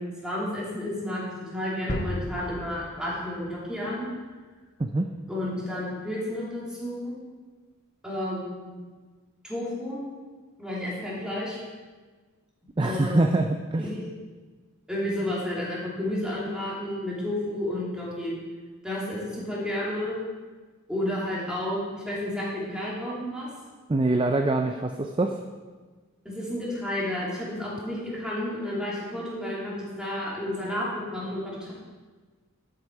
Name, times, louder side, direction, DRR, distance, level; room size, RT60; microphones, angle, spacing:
voice 1, 0.0-4.1 5.3-7.1 8.0-8.7 9.4-10.0 10.6-11.6 12.8-13.3 13.8-14.1 14.9-18.4 18.8-20.2 20.9-23.5 26.2-31.7, left 1 dB, 5° right, -6 dB, 2.9 m, -31 dB
sound 1, 1.9-3.8 4.2-4.3, equal, 35° left, 1.0 m, -35 dB
voice 2, 4.8-5.1 12.8-13.9 23.9-25.3, right 2 dB, 25° right, 5 dB, 0.4 m, -24 dB
13.0 x 7.8 x 4.7 m, 1.4 s
head